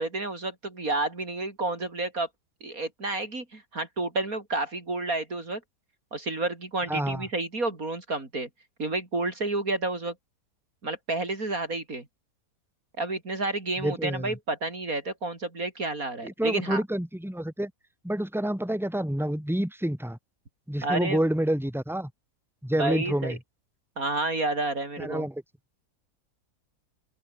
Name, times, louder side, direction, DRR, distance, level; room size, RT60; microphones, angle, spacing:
voice 1, 0.0-2.3 2.6-5.6 6.1-8.5 8.8-10.1 10.8-12.1 13.0-16.8 20.8-21.2 22.8-23.4 24.0-25.3, right 2 dB, 55° right, 4.6 m, -30 dB
voice 2, 6.9-7.2 13.8-14.3 16.2-17.7 18.0-20.2 20.7-22.1 22.6-23.4 25.0-25.4, right 1 dB, ahead, 4.4 m, -28 dB
open air
omnidirectional pair, 1.8 m